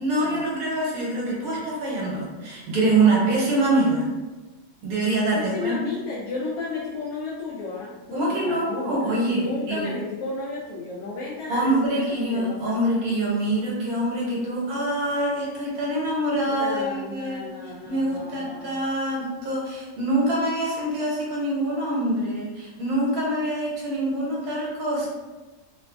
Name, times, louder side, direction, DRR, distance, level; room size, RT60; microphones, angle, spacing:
voice 1, 0.0-4.1 4.8-5.7 8.1-9.9 11.5-17.5 17.9-25.1, right 1 dB, 65° right, -4 dB, 1.2 m, -25 dB
voice 2, 5.3-12.7 16.5-18.8, left 3 dB, 70° left, -6 dB, 1.0 m, -33 dB
3.0 x 2.4 x 2.3 m, 1.2 s
omnidirectional pair, 1.7 m